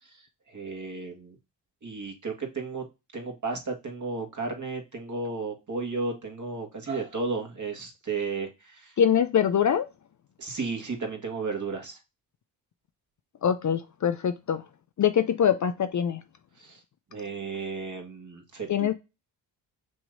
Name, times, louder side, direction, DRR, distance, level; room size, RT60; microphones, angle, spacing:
voice 1, 0.5-1.4 1.8-2.8 3.1-9.0 10.4-12.0 16.6-16.8 17.1-18.9, right 4 dB, 40° right, 1.9 m, -33 dB
voice 2, 9.0-9.9 13.4-14.6 15.0-16.2 18.7-18.9, left 8 dB, 40° left, 0.6 m, -23 dB
6.2 x 3.1 x 2.6 m
supercardioid pair, 45°, 46 cm